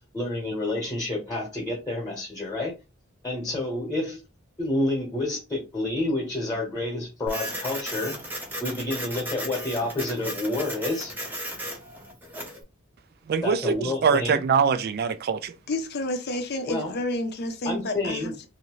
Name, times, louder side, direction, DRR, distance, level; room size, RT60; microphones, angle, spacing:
voice 1, 0.1-2.7 3.2-4.2 4.6-8.1 8.6-11.1 13.4-14.4 16.7-17.0 17.6-18.5, left 2 dB, 15° left, 1.1 m, -29 dB
Printer, 7.3-12.6, equal, 10° right, 0.7 m, -35 dB
voice 2, 13.3-15.6, right 6 dB, 50° right, 0.4 m, -23 dB
voice 3, 15.7-18.5, left 1 dB, 50° left, 0.6 m, -30 dB
2.7 x 2.6 x 3.0 m
head